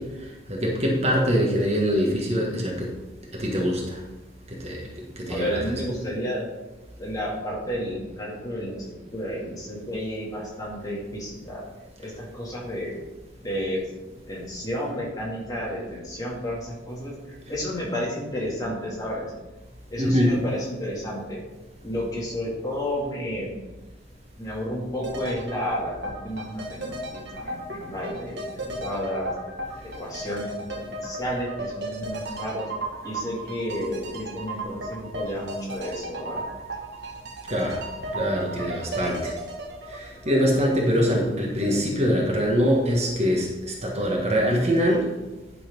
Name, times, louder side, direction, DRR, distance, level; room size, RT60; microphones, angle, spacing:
voice 1, 0.0-2.9 3.3-4.0 4.5-4.9 5.2-5.7 20.0-20.4 37.5-37.8 38.1-39.3 39.9-45.1, equal, 35° right, -1 dB, 1.4 m, -24 dB
voice 2, 5.3-6.4 7.0-11.6 12.0-12.9 13.4-13.9 14.3-19.3 19.9-21.4 21.8-23.5 24.3-29.3 30.0-32.7 33.0-36.4, equal, 20° left, -4 dB, 2.2 m, -31 dB
sound 1, 25.0-41.0 41.3-41.4, right 1 dB, 60° right, 1.3 m, -35 dB
10.5 x 4.2 x 5.3 m, 1.1 s
head